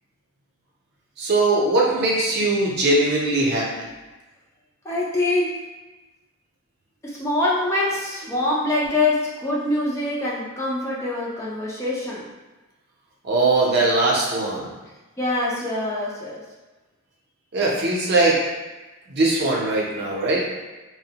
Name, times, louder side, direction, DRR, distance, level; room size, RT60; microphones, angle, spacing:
voice 1, 1.2-3.7 13.2-14.7 17.5-18.4 19.1-20.5, right 2 dB, 50° right, -4 dB, 0.6 m, -20 dB
voice 2, 4.8-5.5 7.0-12.3 15.2-16.4, left 2 dB, 15° left, -6 dB, 0.4 m, -24 dB
3.0 x 2.1 x 2.8 m, 1.2 s
head